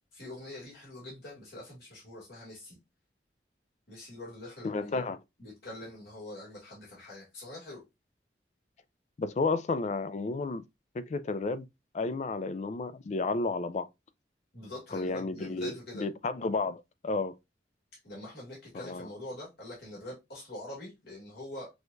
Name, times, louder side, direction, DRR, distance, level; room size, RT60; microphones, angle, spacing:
voice 1, 0.1-2.8 3.9-5.0 5.4-7.8 14.5-16.1 18.0-21.7, left 1 dB, 60° left, 1.9 m, -44 dB
voice 2, 4.6-5.2 9.2-10.6 10.9-11.7 11.9-13.9 14.9-17.3 18.7-19.1, left 3 dB, 40° left, 0.3 m, -32 dB
6.2 x 2.3 x 2.5 m
head